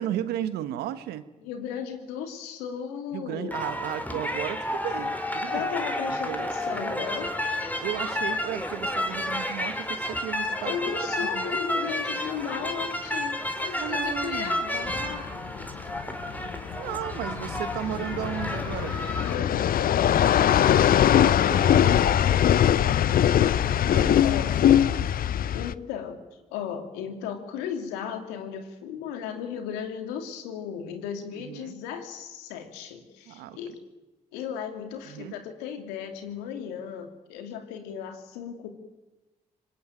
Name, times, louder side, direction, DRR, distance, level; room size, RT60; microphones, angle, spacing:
voice 1, 0.0-1.2 3.1-5.7 6.1-6.4 6.7-7.1 7.8-11.6 13.7-14.6 16.8-19.0 21.2-22.1 23.9-25.2 31.3-31.8 33.2-33.6 35.1-35.4, right 12 dB, 80° right, 13 dB, 1.3 m, -35 dB
voice 2, 1.4-3.5 5.5-7.3 10.6-15.4 18.7-18.8 19.3-22.8 23.3-24.6 25.5-26.2 26.5-33.8 34.3-38.7, left 8 dB, 90° left, 7 dB, 2.7 m, -36 dB
sound 1, 3.5-19.3, left 1 dB, 10° left, 3.8 m, -31 dB
sound 2, 14.9-25.7, left 10 dB, 65° left, 0.7 m, -22 dB
25.0 x 20.5 x 9.0 m, 1.1 s
hypercardioid pair, 50°, 16 cm